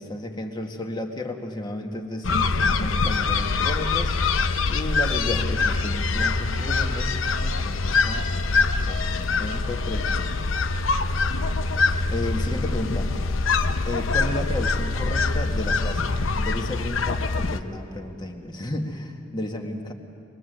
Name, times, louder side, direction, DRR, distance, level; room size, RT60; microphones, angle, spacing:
voice 1, 0.0-4.1 4.4-7.1 7.4-8.3 8.8-10.5 12.1-13.3 13.9-19.9, left 1 dB, 20° left, 2 dB, 1.7 m, -33 dB
sound 1, 2.2-17.6, left 4 dB, 80° left, 0.8 m, -24 dB
24.0 x 21.0 x 7.9 m, 2.4 s
head